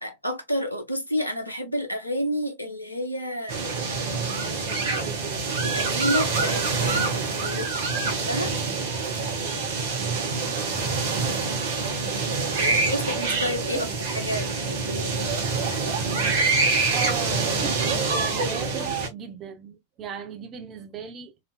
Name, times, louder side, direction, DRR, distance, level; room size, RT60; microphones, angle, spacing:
voice 1, 0.0-3.6 3.9-4.8 5.6-8.5 12.3-15.3, equal, 85° left, 0.7 m, -31 dB
sound 1, 3.5-19.1, right 4 dB, 55° right, 1.1 m, -26 dB
voice 2, 10.1-10.7 13.7-13.8 16.9-21.3, right 7 dB, 30° right, 0.7 m, -37 dB
3.1 x 2.7 x 2.3 m
figure-of-eight pair, 90°, 0 cm